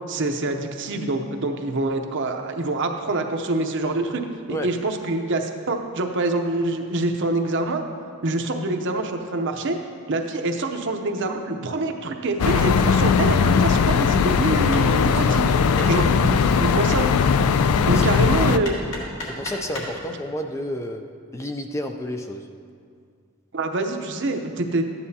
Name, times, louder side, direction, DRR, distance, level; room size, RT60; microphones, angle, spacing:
voice 1, 0.1-4.2 4.6-7.8 8.2-9.8 10.1-15.4 15.9-17.1 17.9-19.0 23.5-24.9, right 2 dB, 55° right, 5 dB, 0.7 m, -25 dB
sound 1, 12.4-18.6, left 6 dB, 80° left, 0.4 m, -19 dB
Hammer, 14.7-20.0, left 1 dB, 55° left, 2.5 m, -38 dB
voice 2, 15.1-15.9 16.2-16.4 17.9-18.1 18.5-18.6 19.2-21.0 21.3-22.5, equal, 15° left, 5 dB, 0.4 m, -31 dB
13.5 x 9.6 x 2.8 m, 2.2 s
head